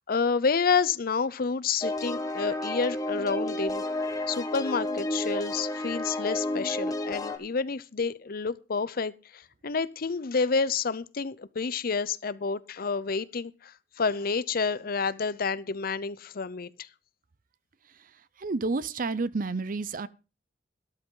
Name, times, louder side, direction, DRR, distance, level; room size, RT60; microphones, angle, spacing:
voice 1, 0.0-3.8 4.3-16.9, left 5 dB, 55° left, 0.6 m, -29 dB
sound 1, 1.8-7.4, left 1 dB, 20° left, 1.4 m, -31 dB
voice 2, 18.4-20.1, right 3 dB, 50° right, 0.6 m, -30 dB
13.0 x 12.5 x 3.8 m
head